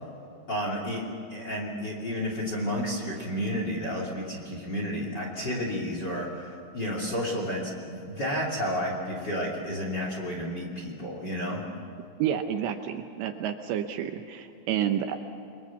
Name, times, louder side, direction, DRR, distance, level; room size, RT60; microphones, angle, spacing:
voice 1, 0.5-1.0 1.3-11.6, equal, 30° left, -1 dB, 2.6 m, -31 dB
voice 2, 12.2-15.2, right 9 dB, 75° right, 6 dB, 2.9 m, -29 dB
29.5 x 23.0 x 7.2 m, 2.6 s
omnidirectional pair, 5.5 m